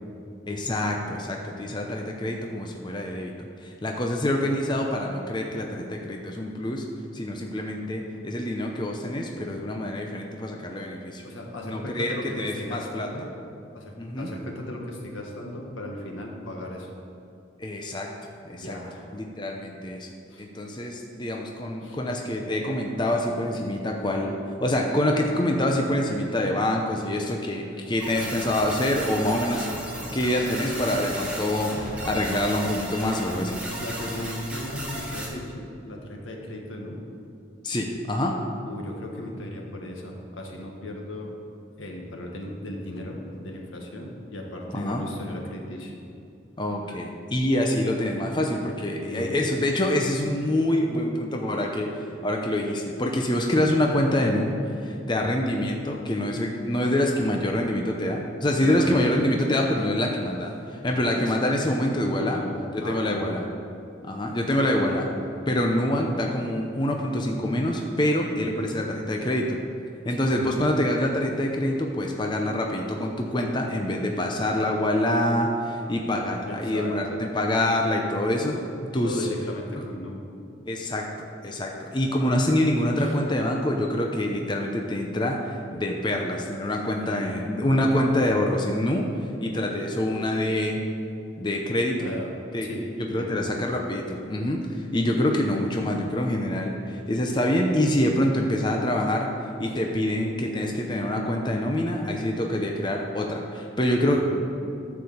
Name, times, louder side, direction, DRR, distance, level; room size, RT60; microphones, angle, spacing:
voice 1, 0.5-3.3 3.6-6.8 7.1-11.2 11.6-13.1 14.0-14.3 17.6-18.1 18.4-18.8 19.1-20.1 20.4-29.8 30.1-33.6 37.6-38.3 44.7-45.1 46.6-62.4 62.7-63.4 64.0-65.1 65.5-69.6 70.0-79.3 79.8-79.9 80.6-81.1 81.4-90.8 91.4-92.1 92.5-99.3 99.6-104.2, left 1 dB, 25° left, 1 dB, 0.7 m, -26 dB
voice 2, 11.2-13.3 13.7-16.9 18.5-19.1 20.3-20.5 21.8-22.0 33.8-37.0 38.6-41.3 41.8-45.9 46.9-47.0 49.0-49.4 52.0-52.1 58.6-59.0 60.8-61.2 62.1-63.4 70.1-70.5 76.5-77.2 79.0-80.2 83.0-83.1 87.1-87.3 92.0-92.4 92.6-93.4 99.7-99.8 104.1-104.5, left 1 dB, 85° left, 0 dB, 1.5 m, -37 dB
sound 1, 28.0-35.3, right 1 dB, 5° right, 1.4 m, -35 dB
11.5 x 4.9 x 7.1 m, 2.6 s
head